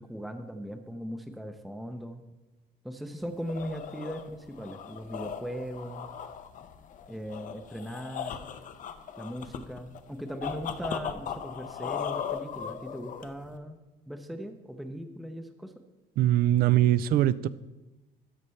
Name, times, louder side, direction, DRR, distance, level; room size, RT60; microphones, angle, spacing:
voice 1, 0.0-2.2 2.8-6.1 7.1-8.4 9.2-15.7, equal, ahead, 7 dB, 0.6 m, -39 dB
sound 1, 3.2-13.6, left 8 dB, 50° left, 0.6 m, -38 dB
voice 2, 16.2-17.5, right 13 dB, 65° right, 18 dB, 0.4 m, -22 dB
12.5 x 6.6 x 3.2 m, 1.1 s
cardioid pair, 110°, 17 cm